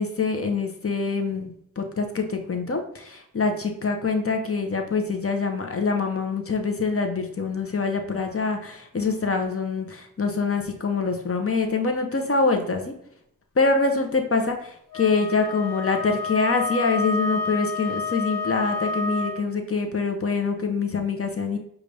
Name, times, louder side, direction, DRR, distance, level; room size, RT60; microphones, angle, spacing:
voice 1, 0.0-12.9 13.6-21.6, left 4 dB, 45° left, 4 dB, 0.8 m, -25 dB
Wind instrument woodwind instrument, 14.9-19.5, left 4 dB, 80° left, 1.1 m, -29 dB
6.6 x 2.5 x 3.2 m, 0.76 s
cardioid pair, 60°, 32 cm